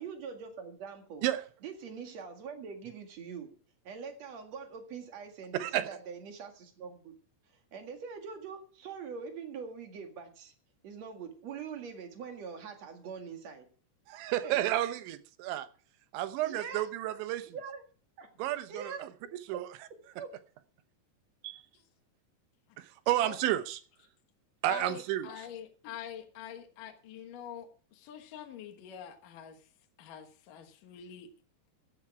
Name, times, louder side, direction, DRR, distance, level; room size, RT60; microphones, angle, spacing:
voice 1, 0.0-1.2 1.6-3.5 3.8-7.2 7.5-10.5 10.8-13.7 14.4-14.6 16.4-16.8 17.5-17.8 18.2-18.3 18.7-19.0 19.5-19.6 20.2-20.3, right 6 dB, 50° right, 5 dB, 2.4 m, -43 dB
voice 2, 14.1-15.7 16.1-17.5 18.4-19.7 21.4-21.5 22.8-23.8 24.6-25.5, right 13 dB, 85° right, 12 dB, 3.3 m, -32 dB
voice 3, 24.7-29.6 30.0-31.3, left 9 dB, 60° left, 4 dB, 2.5 m, -45 dB
15.5 x 11.0 x 4.6 m, 0.41 s
omnidirectional pair, 5.2 m